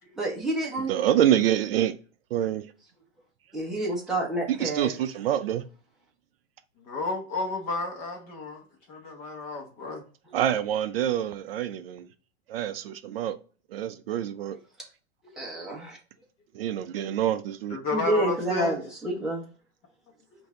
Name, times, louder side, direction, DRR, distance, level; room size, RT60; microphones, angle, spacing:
voice 1, 0.1-0.9 3.5-4.9 15.3-16.0 17.9-19.4, right 1 dB, ahead, 0.9 m, -28 dB
voice 2, 0.9-1.9 2.3-2.7 4.5-5.6 10.3-12.1 12.5-13.4 13.7-14.6 16.5-17.8, right 11 dB, 55° right, 0.5 m, -26 dB
voice 3, 6.8-8.6 8.9-10.0 17.7-18.8, left 3 dB, 30° left, 1.1 m, -32 dB
5.3 x 2.7 x 3.6 m
supercardioid pair, 165°, 34 cm